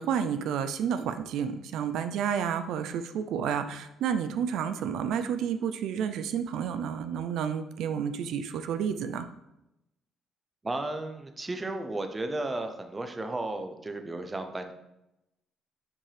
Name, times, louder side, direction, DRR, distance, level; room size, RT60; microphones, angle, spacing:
voice 1, 0.0-9.3, right 8 dB, 70° right, 9 dB, 0.4 m, -30 dB
voice 2, 10.6-14.7, right 2 dB, 15° right, 6 dB, 0.6 m, -34 dB
7.1 x 6.0 x 3.3 m, 0.90 s
cardioid pair, 165°, 0 cm